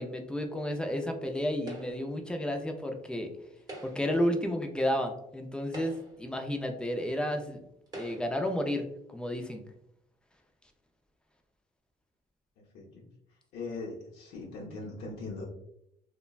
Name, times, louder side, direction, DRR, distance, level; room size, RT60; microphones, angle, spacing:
voice 1, 0.0-3.3 3.8-7.6 7.9-9.6, equal, 5° left, 4 dB, 0.3 m, -32 dB
sound 1, 1.7-2.2 3.6-4.2 5.1-5.2 5.6-6.3 7.2-7.3 7.9-8.5, right 1 dB, 25° right, 0.8 m, -45 dB
voice 2, 13.5-15.4, left 3 dB, 80° left, -3 dB, 0.7 m, -40 dB
2.9 x 2.2 x 2.3 m, 0.79 s
cardioid pair, 110°, 17 cm